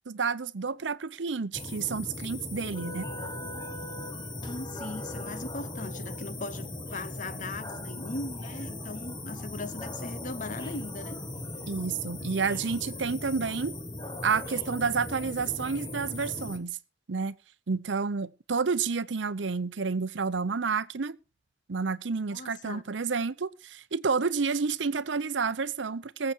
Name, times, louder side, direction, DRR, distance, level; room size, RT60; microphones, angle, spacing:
voice 1, 0.1-3.1 11.7-13.8 14.2-16.8 17.1-17.4 17.7-21.2 21.7-26.3, right 5 dB, 75° right, 0.7 m, -30 dB
sound 1, 1.5-16.6, left 1 dB, 25° left, 1.7 m, -38 dB
voice 2, 4.4-11.2 22.3-22.8, left 3 dB, 45° left, 0.9 m, -39 dB
20.0 x 7.8 x 4.5 m
head